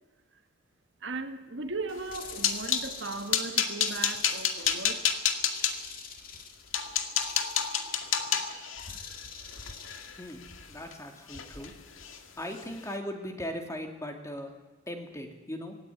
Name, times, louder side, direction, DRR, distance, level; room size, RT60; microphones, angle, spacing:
voice 1, 1.0-5.1, right 3 dB, 65° right, 1.6 m, -37 dB
sound 1, 2.0-2.9 3.3-5.7 6.3-6.4 6.7-10.9 11.3-11.7 12.0-12.2 12.6-12.7, left 8 dB, 90° left, 2.0 m, -30 dB
sound 2, 2.1-3.4 3.9-5.1 5.5-6.8 7.2-8.2 8.8-10.1, left 6 dB, 45° left, 2.2 m, -45 dB
voice 2, 10.7-11.7 12.4-14.6 14.9-15.8, equal, 15° left, 2.6 m, -38 dB
21.5 x 16.5 x 9.8 m
head